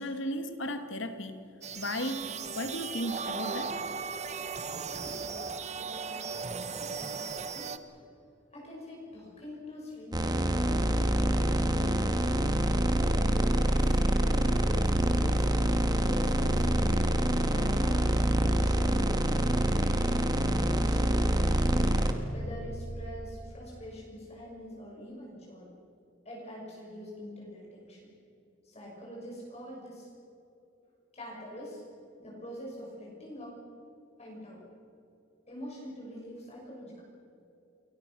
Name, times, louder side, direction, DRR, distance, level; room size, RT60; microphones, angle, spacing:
voice 1, 0.0-2.2 2.6-3.8, left 1 dB, 75° left, 8 dB, 2.0 m, -35 dB
sound 1, 1.6-7.8, right 5 dB, 35° right, 1.1 m, -37 dB
voice 2, 4.9-6.5 6.7-7.7 8.5-12.5 13.0-15.6 16.0-17.0 17.5-19.9 20.5-21.8 22.3-25.7 26.2-28.1 28.6-30.1 31.1-31.8 32.2-33.6 34.2-34.6 35.5-37.0, left 1 dB, 35° left, -3 dB, 6.1 m, -45 dB
sound 2, 10.1-22.1, right 1 dB, 20° right, 1.6 m, -26 dB
29.0 x 21.5 x 6.2 m, 2.8 s
head